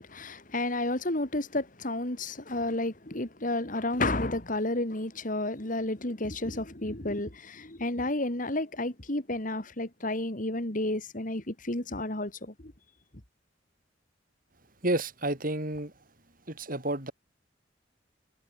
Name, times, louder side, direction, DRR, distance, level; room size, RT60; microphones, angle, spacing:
voice 1, 0.0-12.7, left 2 dB, 45° left, 2.9 m, -31 dB
voice 2, 14.8-15.9 16.5-17.1, right 1 dB, 50° right, 5.8 m, -30 dB
head